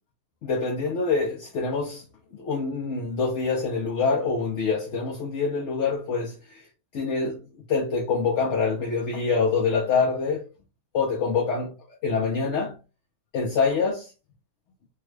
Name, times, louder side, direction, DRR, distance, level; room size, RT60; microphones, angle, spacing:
voice 1, 0.4-2.0 2.3-6.7 6.9-7.4 7.7-10.5 10.9-11.8 12.0-12.8 13.3-14.1, left 4 dB, 55° left, 0.9 m, -25 dB
3.3 x 2.3 x 3.1 m
omnidirectional pair, 1.6 m